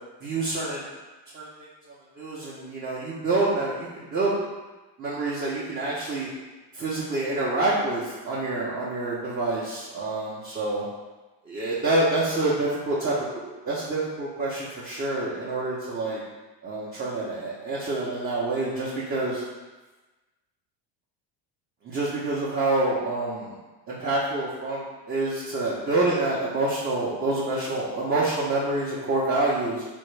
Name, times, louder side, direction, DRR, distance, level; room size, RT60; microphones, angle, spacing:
voice 1, 0.2-0.8 1.3-1.7 2.2-4.4 5.0-6.3 6.7-10.9 11.4-13.2 13.4-16.2 16.6-19.4 21.8-23.6 23.9-29.8, right 2 dB, 25° right, -7 dB, 0.5 m, -27 dB
3.4 x 2.0 x 3.1 m, 1.2 s
cardioid pair, 115°, 48 cm